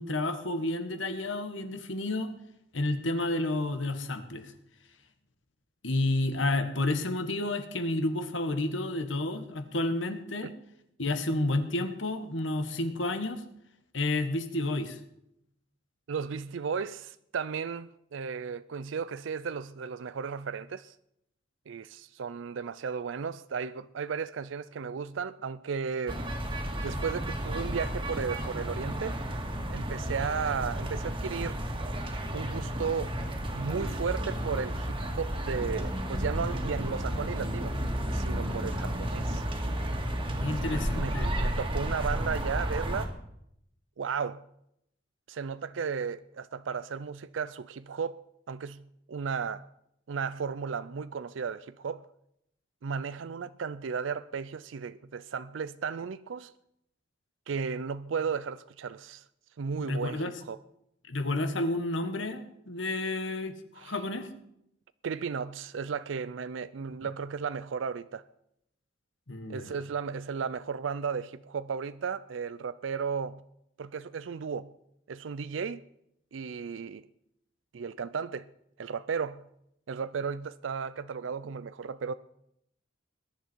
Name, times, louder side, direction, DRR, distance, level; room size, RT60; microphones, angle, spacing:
voice 1, 0.0-2.3 2.7-4.5 5.8-10.5 11.0-13.4 13.9-15.0 40.4-41.3 59.9-60.3 61.1-64.3 69.3-69.7, left 2 dB, 75° left, 1.6 m, -30 dB
voice 2, 16.1-21.0 21.7-26.2 26.8-29.2 29.7-31.6 32.3-33.1 33.5-37.8 38.1-39.5 40.5-43.1 44.0-44.4 45.3-48.8 49.1-49.7 50.1-52.1 52.8-56.5 57.5-59.3 59.6-60.6 63.8-64.0 65.0-68.2 69.5-73.4 73.8-74.7 75.1-75.8 76.3-77.1 77.7-78.5 78.8-79.4 79.9-82.1, right 6 dB, 75° right, 0.4 m, -34 dB
sound 1, 26.1-43.1, equal, 25° right, 2.1 m, -32 dB
21.0 x 11.0 x 4.6 m
head